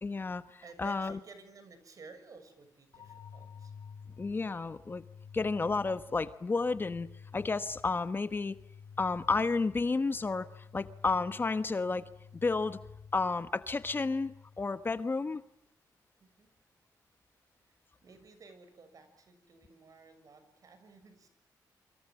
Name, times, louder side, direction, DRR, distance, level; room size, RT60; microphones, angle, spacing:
voice 1, 0.0-1.2 4.2-5.0 5.3-7.1 7.3-8.5 9.0-12.0 12.4-12.8 13.1-15.4, left 3 dB, 30° left, 12 dB, 1.1 m, -31 dB
voice 2, 0.6-3.7 15.2-15.3 16.2-16.5 17.6-21.3, right 4 dB, 55° right, 10 dB, 6.7 m, -54 dB
sound 1, 2.9-14.9, left 6 dB, 85° left, 2.4 m, -52 dB
27.5 x 25.5 x 7.5 m, 0.76 s
cardioid pair, 105°, 7 cm